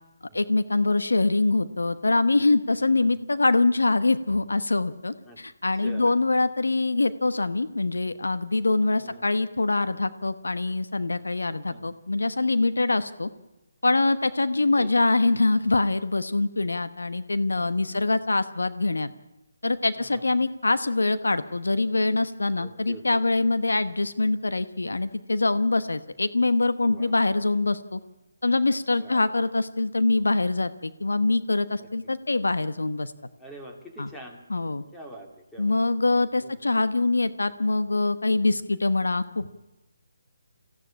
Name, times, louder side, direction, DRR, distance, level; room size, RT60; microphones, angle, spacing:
voice 1, 0.3-13.3 13.8-19.1 19.6-28.0 28.4-33.1 34.0-34.1 34.5-34.8 35.6-39.5, left 2 dB, 85° left, 12 dB, 1.1 m, -24 dB
voice 2, 5.7-6.2 9.0-9.2 11.6-11.9 14.8-14.9 17.9-18.1 19.9-20.4 22.5-23.2 26.8-27.1 29.0-29.2 31.8-31.9 33.4-34.4 34.9-35.8 36.4-36.6 38.4-38.5, right 1 dB, 5° left, 0 dB, 2.9 m, -45 dB
22.5 x 15.5 x 8.7 m, 1.0 s
figure-of-eight pair, 155°, 0 cm